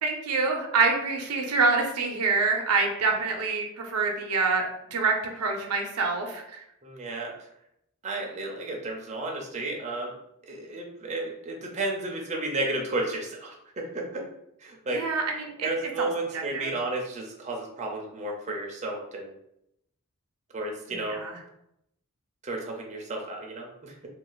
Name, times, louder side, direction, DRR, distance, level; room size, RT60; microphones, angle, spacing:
voice 1, 0.0-4.6 4.9-6.6 14.9-15.7 16.0-16.7 20.9-21.4, right 4 dB, 90° right, 2 dB, 0.6 m, -26 dB
voice 2, 6.8-7.5 8.0-10.1 10.5-14.3 14.6-15.1 15.6-19.4 20.5-21.2 22.4-23.9, right 2 dB, 30° right, 0 dB, 0.5 m, -32 dB
2.5 x 2.3 x 3.8 m, 0.79 s
head